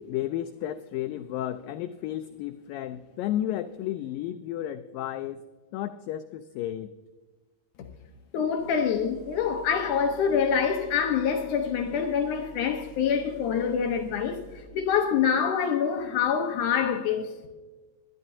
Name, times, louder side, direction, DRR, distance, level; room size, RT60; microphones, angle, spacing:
voice 1, 0.1-5.4 5.7-6.9, left 12 dB, 85° left, 2.0 m, -32 dB
voice 2, 8.3-14.4 14.7-17.4, left 7 dB, 70° left, 2.0 m, -26 dB
sound 1, 8.6-14.6, right 4 dB, 55° right, 4.1 m, -49 dB
21.0 x 12.5 x 2.7 m
omnidirectional pair, 4.5 m